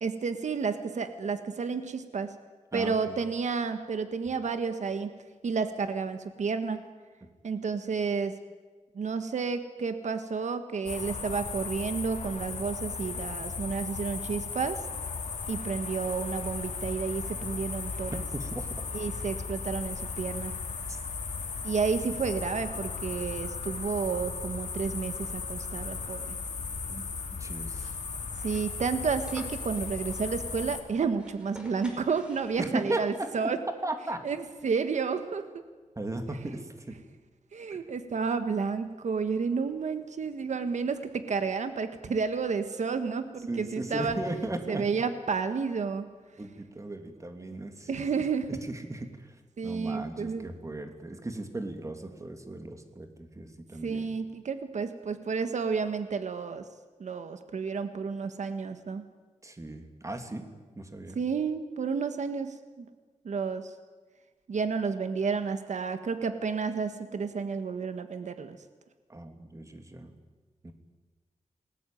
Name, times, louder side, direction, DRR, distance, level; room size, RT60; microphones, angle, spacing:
voice 1, 0.0-2.3 2.7-5.2 5.4-6.9 7.4-8.4 9.0-14.8 15.5-18.2 18.9-20.5 21.6-26.3 28.4-33.6 34.2-34.4 34.6-35.6 37.5-44.2 44.7-46.1 47.9-48.5 49.6-50.4 53.8-56.7 57.0-59.1 61.2-62.9 63.3-63.7 64.5-68.6, right 5 dB, 80° right, 9 dB, 1.6 m, -31 dB
voice 2, 2.7-3.2 7.2-7.3 18.3-18.7 20.9-21.0 26.9-27.0 27.4-27.9 32.6-33.5 33.8-34.2 36.0-37.0 37.7-37.8 43.5-44.9 46.4-47.9 48.5-54.1 59.4-60.4 60.7-61.2 69.1-70.1 70.6-70.7, right 2 dB, 25° right, 6 dB, 3.0 m, -37 dB
sound 1, 10.9-30.8, left 5 dB, 80° left, 3.0 m, -36 dB
sound 2, 27.7-33.1, equal, 10° right, 5.3 m, -51 dB
28.5 x 20.5 x 9.3 m, 1.4 s
wide cardioid pair, 115°, 12 cm